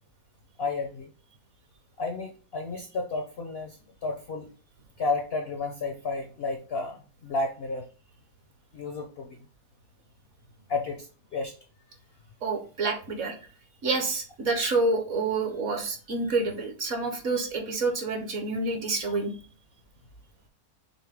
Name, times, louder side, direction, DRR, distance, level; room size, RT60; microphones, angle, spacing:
voice 1, 0.6-1.1 2.0-4.5 5.0-7.9 8.7-9.4 10.7-11.6 19.1-19.2, left 3 dB, 65° left, 4 dB, 0.6 m, -32 dB
voice 2, 12.4-13.4 13.8-19.3, right 3 dB, 55° right, 4 dB, 1.1 m, -28 dB
6.4 x 2.2 x 3.4 m, 0.38 s
omnidirectional pair, 1.7 m